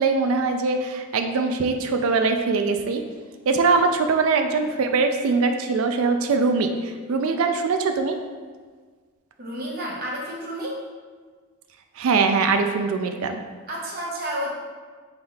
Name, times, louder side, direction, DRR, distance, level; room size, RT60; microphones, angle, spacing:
voice 1, 0.0-3.0 3.5-8.2 12.0-13.4, right 4 dB, 75° right, 6 dB, 0.4 m, -22 dB
voice 2, 9.4-10.8 13.7-14.5, equal, 45° right, -2 dB, 0.8 m, -30 dB
5.5 x 3.4 x 2.3 m, 1.5 s
head